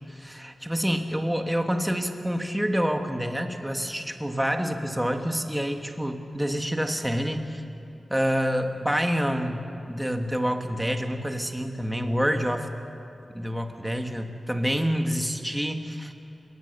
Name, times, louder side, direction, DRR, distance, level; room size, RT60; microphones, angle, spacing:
voice 1, 0.1-7.4 8.1-12.7 13.3-16.1, equal, 5° right, 5 dB, 1.4 m, -27 dB
30.0 x 18.5 x 6.6 m, 2.7 s
wide cardioid pair, 170°, 0 cm